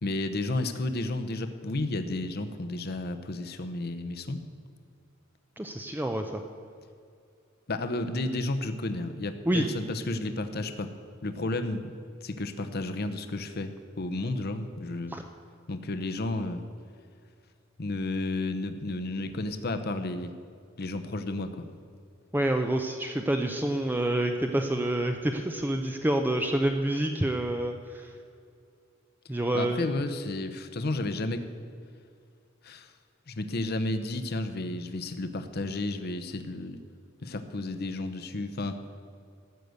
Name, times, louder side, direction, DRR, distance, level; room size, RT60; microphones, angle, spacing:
voice 1, 0.0-4.4 7.7-10.9 11.2-11.9 12.2-15.2 15.7-16.6 17.8-20.3 20.8-21.7 29.5-31.5 32.6-32.9 33.3-36.8 37.2-38.8, left 2 dB, 50° left, 8 dB, 0.8 m, -32 dB
voice 2, 5.6-6.4 9.5-9.7 15.1-15.2 22.3-28.1 29.3-29.8, right 1 dB, 10° right, 4 dB, 0.5 m, -28 dB
14.0 x 6.7 x 7.9 m, 2.3 s
head